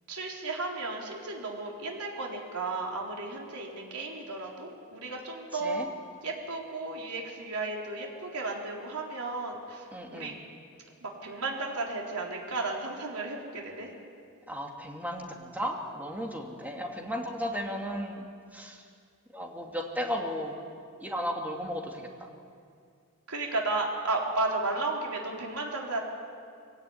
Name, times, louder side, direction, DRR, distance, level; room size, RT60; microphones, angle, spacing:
voice 1, 0.1-5.9 6.2-10.3 11.0-13.9 23.3-26.0, right 2 dB, 85° right, -1 dB, 4.0 m, -34 dB
voice 2, 5.5-5.9 9.9-10.3 14.5-18.2 18.5-18.8 19.3-20.6 21.0-22.1, equal, 10° right, 1 dB, 2.6 m, -35 dB
22.5 x 16.5 x 9.7 m, 2.3 s
head